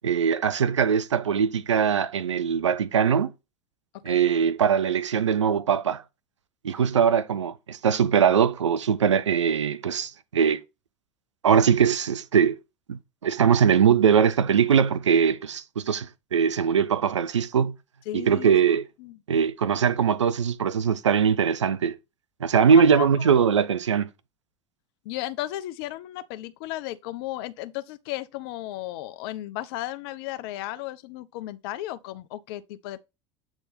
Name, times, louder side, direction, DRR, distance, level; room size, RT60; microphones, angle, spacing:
voice 1, 0.0-3.3 4.0-6.0 6.6-10.6 11.4-12.6 12.9-17.8 18.1-18.9 19.3-21.9 22.4-24.1, right 7 dB, 75° right, 0.6 m, -21 dB
voice 2, 18.1-18.5 19.0-19.2 22.7-23.5 25.0-33.0, left 15 dB, 55° left, 0.6 m, -34 dB
8.0 x 3.5 x 4.2 m
figure-of-eight pair, 70°, 15 cm